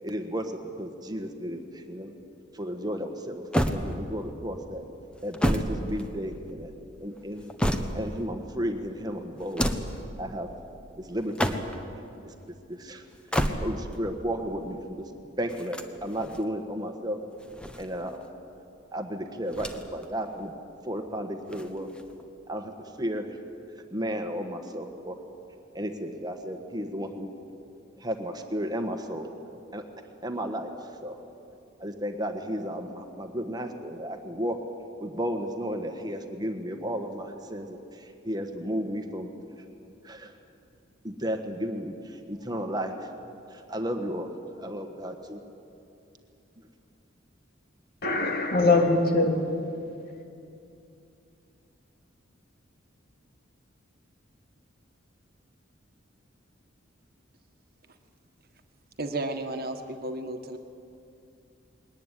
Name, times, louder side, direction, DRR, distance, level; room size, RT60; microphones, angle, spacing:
voice 1, 0.0-2.1 2.5-4.8 5.2-6.7 7.0-7.5 7.9-9.7 10.2-10.5 11.0-11.6 12.2-13.0 13.6-15.1 15.4-17.2 17.8-18.2 18.9-20.5 20.8-21.9 22.5-22.7 23.0-23.3 23.9-25.2 25.7-27.3 28.0-29.3 29.7-29.8 30.2-30.7 31.0-31.2 31.8-34.6 35.0-39.3 40.0-40.3 41.0-43.1 43.5-44.3 44.6-45.4, equal, 20° right, 5 dB, 1.4 m, -33 dB
sound 1, 3.5-4.3 5.1-6.5 7.2-8.2 9.4-10.0 11.2-11.9 13.1-14.0 15.5-16.5 17.4-18.3 19.5-20.1 20.4-20.5 21.5-22.3, equal, 5° left, 1.2 m, -30 dB
voice 2, 48.0-49.6, left 2 dB, 50° left, 3 dB, 2.7 m, -22 dB
voice 3, 59.0-60.6, right 2 dB, 50° right, 5 dB, 1.6 m, -33 dB
21.0 x 18.5 x 9.9 m, 2.6 s
head